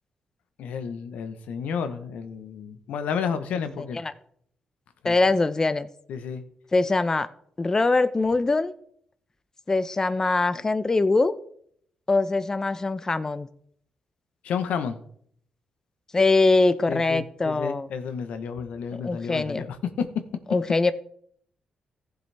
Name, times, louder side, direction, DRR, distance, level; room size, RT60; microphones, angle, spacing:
voice 1, 0.6-4.0 5.0-5.1 6.1-6.4 14.4-15.0 16.9-19.8, left 6 dB, 80° left, 9 dB, 1.0 m, -31 dB
voice 2, 3.8-4.1 5.0-5.9 6.7-7.3 7.6-8.7 9.7-11.3 12.1-13.5 16.1-17.9 19.0-19.6 20.5-20.9, left 3 dB, 25° left, 12 dB, 0.5 m, -22 dB
14.5 x 7.7 x 3.4 m, 0.66 s
cardioid pair, 80°, 2 cm